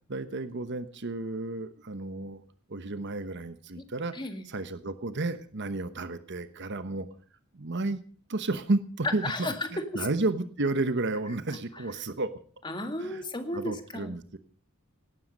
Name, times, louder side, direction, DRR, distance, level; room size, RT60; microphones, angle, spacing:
voice 1, 0.1-2.4 2.7-4.1 4.4-7.1 7.5-8.0 8.3-9.3 9.9-12.3 13.0-13.2 13.5-14.4, right 2 dB, 55° right, 11 dB, 1.1 m, -32 dB
voice 2, 4.1-4.4 9.2-10.1 12.6-14.1, left 1 dB, 20° left, 7 dB, 1.9 m, -34 dB
18.0 x 12.5 x 5.3 m, 0.43 s
head